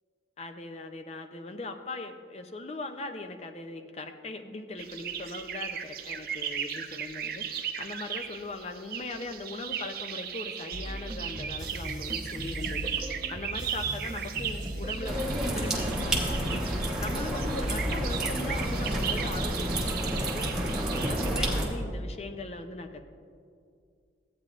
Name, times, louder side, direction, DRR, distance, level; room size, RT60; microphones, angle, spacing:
voice 1, 0.4-20.6 20.9-23.0, left 2 dB, 35° left, 6 dB, 0.5 m, -39 dB
sound 1, 4.8-21.5, right 8 dB, 50° right, 0.5 m, -37 dB
sound 2, 10.7-20.0, right 1 dB, 20° right, 0.8 m, -39 dB
sound 3, 15.0-21.7, right 1 dB, 5° right, 1.1 m, -30 dB
14.0 x 9.0 x 2.5 m, 2.3 s
head